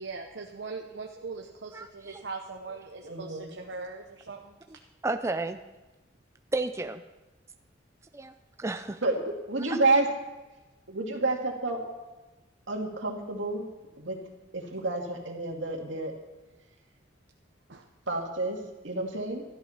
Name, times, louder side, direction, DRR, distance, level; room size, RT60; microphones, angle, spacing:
voice 1, 0.0-4.6 17.7-17.9, right 4 dB, 65° right, 2 dB, 0.9 m, -40 dB
voice 2, 1.7-2.2 5.0-5.6 6.5-7.0 8.1-8.3 8.6-9.0 9.6-9.8, right 2 dB, 15° right, 6 dB, 0.5 m, -32 dB
voice 3, 3.0-3.5 9.0-10.1 10.9-11.8 12.7-13.6 14.0-14.2 14.5-16.1 18.1-18.6 18.8-19.4, right 2 dB, 85° right, 1 dB, 2.3 m, -29 dB
13.5 x 11.5 x 5.8 m, 1.1 s
head